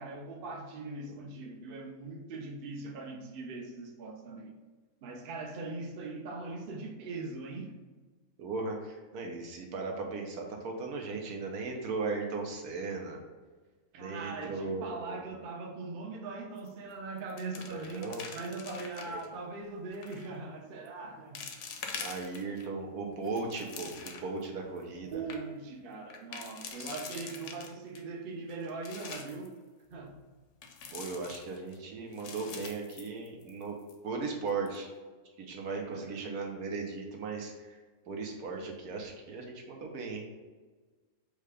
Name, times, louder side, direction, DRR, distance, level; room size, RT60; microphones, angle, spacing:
voice 1, 0.0-4.5 5.0-7.8 13.9-21.5 25.0-29.6 29.9-30.1 35.9-36.3, right 3 dB, 55° right, 0.6 m, -41 dB
voice 2, 8.4-13.2 13.9-15.2 17.7-18.2 19.0-19.2 22.0-25.2 26.8-26.9 30.9-33.8 34.0-34.9 35.4-37.8 38.1-40.3, right 4 dB, 90° right, 1.3 m, -37 dB
sound 1, 16.6-16.9 17.2-19.3 19.9-20.3 20.8-20.9 21.3-22.7 23.1-24.4 24.8-24.9 25.1-25.4 26.1-28.0 28.5-29.5 30.6-31.8 32.1-33.6 33.9-34.0 34.5-34.8, left 5 dB, 65° left, 0.8 m, -44 dB
4.9 x 2.2 x 4.8 m
omnidirectional pair, 1.6 m